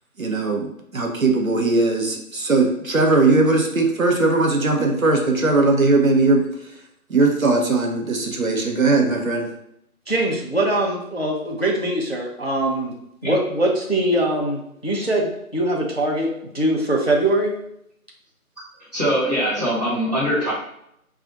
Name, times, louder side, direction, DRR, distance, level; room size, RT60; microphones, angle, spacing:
voice 1, 0.2-6.5 7.1-9.5, right 3 dB, 65° right, 1 dB, 0.7 m, -19 dB
voice 2, 10.1-13.0 13.2-17.5, right 1 dB, 45° left, -1 dB, 0.4 m, -22 dB
voice 3, 18.9-20.5, equal, 25° right, -9 dB, 1.2 m, -22 dB
2.5 x 2.4 x 3.9 m, 0.76 s
figure-of-eight pair, 170°, 45 cm